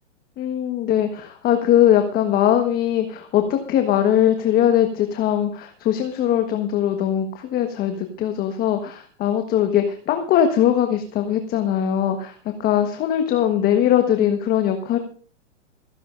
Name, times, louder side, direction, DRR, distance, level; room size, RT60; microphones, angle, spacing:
voice 1, 0.4-15.0, left 10 dB, 25° left, 6 dB, 1.3 m, -20 dB
27.0 x 11.0 x 2.5 m, 0.43 s
hypercardioid pair, 130°, 36 cm